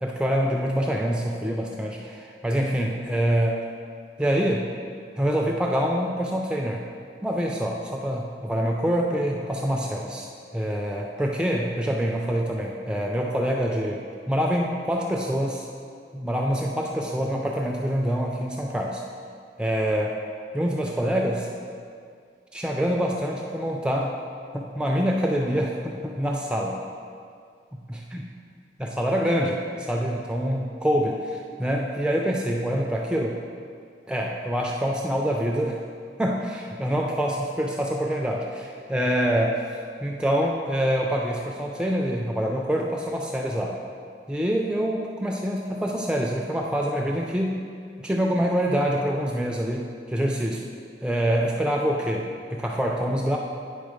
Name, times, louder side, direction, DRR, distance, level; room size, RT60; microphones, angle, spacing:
voice 1, 0.0-3.6 4.2-4.7 5.2-6.8 7.2-10.3 10.5-15.7 16.1-19.0 19.6-20.2 20.5-21.5 22.5-24.2 24.5-26.8 27.9-28.0 28.8-33.4 34.1-35.8 36.2-43.8 44.3-47.6 48.0-50.7 51.0-53.4, equal, 5° right, 0 dB, 0.3 m, -25 dB
9.2 x 3.7 x 5.0 m, 2.2 s
head